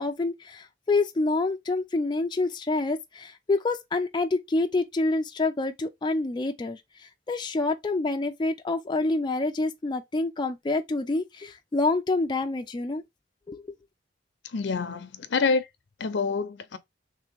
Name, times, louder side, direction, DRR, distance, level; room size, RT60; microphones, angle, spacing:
voice 1, 0.0-13.0 13.5-13.6, left 2 dB, 25° left, 0.4 m, -27 dB
voice 2, 14.5-15.7 16.0-16.8, left 4 dB, 80° left, 0.6 m, -27 dB
3.3 x 2.9 x 3.4 m
head